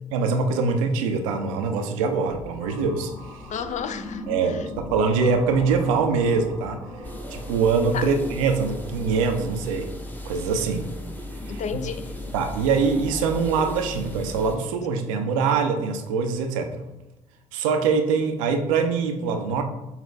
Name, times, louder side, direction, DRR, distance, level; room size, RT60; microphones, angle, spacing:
voice 1, 0.1-3.4 4.3-6.8 7.3-9.9 10.2-10.9 11.5-11.6 12.3-16.9 17.5-19.6, right 5 dB, 80° right, 6 dB, 0.5 m, -23 dB
sound 1, 1.2-13.7, left 1 dB, 80° left, 1.5 m, -40 dB
voice 2, 3.5-4.7 7.9-8.1 11.5-12.1, left 7 dB, 45° left, 10 dB, 0.4 m, -32 dB
sound 2, 7.0-14.6, left 1 dB, 10° left, 0.7 m, -37 dB
5.6 x 2.3 x 3.4 m, 0.97 s
hypercardioid pair, 50°, 17 cm